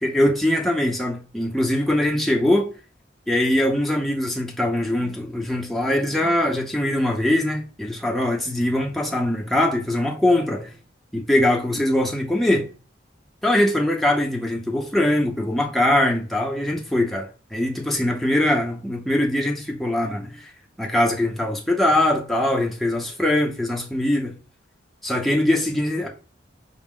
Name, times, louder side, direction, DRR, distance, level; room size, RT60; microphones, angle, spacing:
voice 1, 0.0-2.7 3.3-10.7 11.1-12.7 13.4-20.5 20.8-24.4 25.0-26.1, left 1 dB, ahead, 0.6 m, -22 dB
4.9 x 2.0 x 3.6 m
head